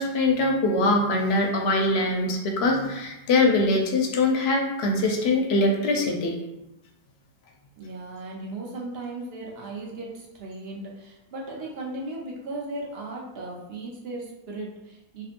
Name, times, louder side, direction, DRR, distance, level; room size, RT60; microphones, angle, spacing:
voice 1, 0.0-6.3, left 2 dB, 75° left, 1 dB, 0.8 m, -23 dB
voice 2, 7.8-15.2, right 2 dB, 70° right, -2 dB, 0.9 m, -36 dB
2.6 x 2.6 x 2.5 m, 0.97 s
omnidirectional pair, 1.1 m